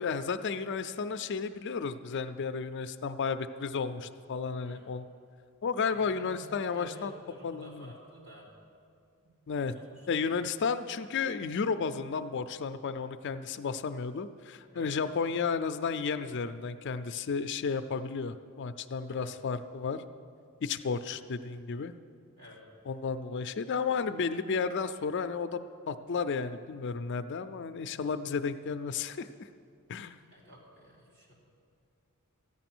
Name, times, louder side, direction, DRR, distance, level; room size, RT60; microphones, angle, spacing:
voice 1, 0.0-5.1 5.6-7.1 7.4-7.9 9.5-9.7 10.1-20.0 20.6-21.9 22.9-25.6 25.9-29.5 29.9-30.2, left 5 dB, 50° left, 10 dB, 0.4 m, -33 dB
voice 2, 5.9-8.5 9.2-10.4 14.7-15.0 19.1-19.4 22.4-22.6 30.3-31.3, equal, 50° right, -6 dB, 3.6 m, -53 dB
14.0 x 9.6 x 6.1 m, 2.4 s
head